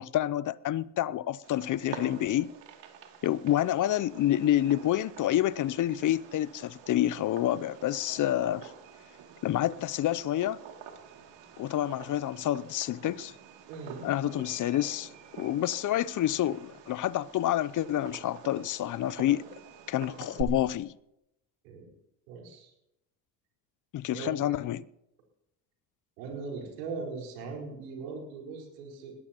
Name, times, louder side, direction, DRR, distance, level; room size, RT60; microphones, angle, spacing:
voice 1, 0.0-2.5 3.2-8.7 9.4-10.6 11.6-13.3 14.0-19.5 19.9-20.9 23.9-24.8, left 13 dB, 40° left, 0.6 m, -28 dB
Fireworks, 1.4-20.4, right 8 dB, 60° right, 2.7 m, -47 dB
voice 2, 13.7-14.1 21.6-21.9 22.3-22.7 24.1-24.6 26.2-29.2, right 4 dB, 80° right, 4.7 m, -40 dB
21.0 x 17.5 x 3.0 m
hypercardioid pair, 65°, 49 cm